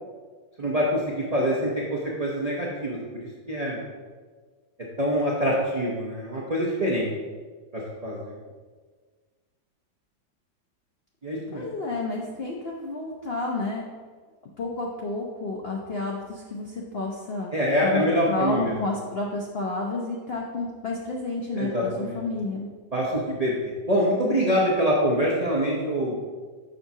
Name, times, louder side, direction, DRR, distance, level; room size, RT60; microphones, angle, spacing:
voice 1, 0.6-3.0 3.5-3.8 5.0-7.1 7.7-8.3 11.2-11.6 17.5-18.7 21.5-22.2 22.9-26.2, equal, 60° right, -4 dB, 0.4 m, -25 dB
voice 2, 11.5-13.9 14.6-17.5 17.8-22.7, left 2 dB, 75° left, -2 dB, 0.5 m, -30 dB
6.3 x 5.9 x 2.7 m, 1.5 s
omnidirectional pair, 1.9 m